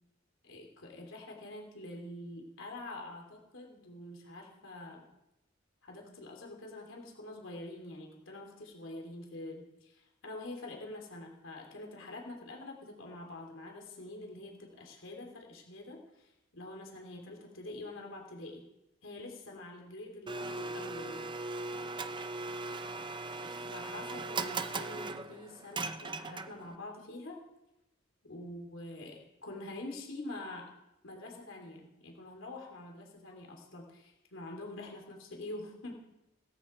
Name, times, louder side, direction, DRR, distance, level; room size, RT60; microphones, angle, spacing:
voice 1, 0.4-5.0 5.8-18.6 19.0-21.3 23.4-27.4 28.2-30.7 31.0-35.9, left 2 dB, 75° left, 1 dB, 3.4 m, -46 dB
Domestic sounds home sounds, 20.3-26.8, right 3 dB, 25° right, 0.6 m, -39 dB
17.5 x 14.5 x 4.6 m, 0.89 s
head